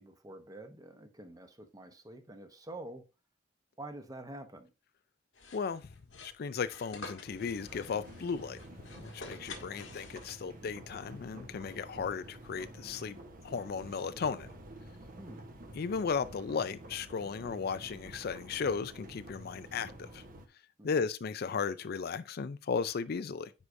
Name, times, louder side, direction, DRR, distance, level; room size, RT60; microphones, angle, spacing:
voice 1, 0.0-3.0 3.8-4.7 9.5-10.0 15.2-15.5 20.8-21.1, right 1 dB, 20° right, 0.9 m, -48 dB
sound 1, 5.3-10.7, left 3 dB, 80° left, 1.5 m, -49 dB
voice 2, 5.5-5.9 6.2-8.6 9.0-13.2 13.4-14.5 15.7-20.2 20.8-23.5, left 5 dB, 55° left, 0.4 m, -35 dB
sound 2, 7.1-20.5, right 1 dB, 50° right, 1.1 m, -50 dB
9.7 x 4.8 x 2.6 m
head